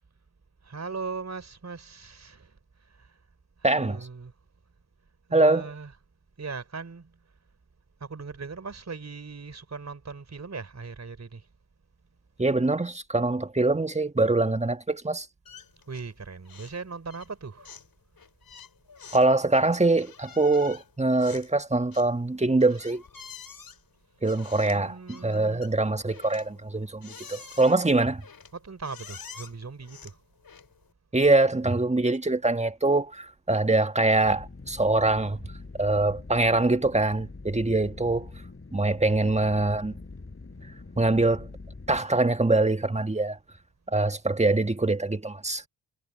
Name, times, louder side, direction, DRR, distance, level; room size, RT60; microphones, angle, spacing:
voice 1, 0.6-3.2 3.6-4.3 5.3-6.0 6.4-7.2 8.0-11.5 15.9-17.7 24.7-25.7 28.5-30.2, right 4 dB, 35° right, 4.0 m, -39 dB
voice 2, 3.6-4.0 5.3-5.6 12.4-15.3 19.1-23.0 24.2-28.2 31.1-35.4 35.8-38.3 38.7-39.9 41.0-41.5 41.9-43.4 43.9-45.7, right 2 dB, 15° right, 1.8 m, -24 dB
sound 1, 15.4-16.2 16.4-16.8 17.1-30.9, left 6 dB, 50° left, 5.1 m, -48 dB
sound 2, 34.2-42.0, left 3 dB, 30° left, 5.4 m, -44 dB
supercardioid pair, 45°, 46 cm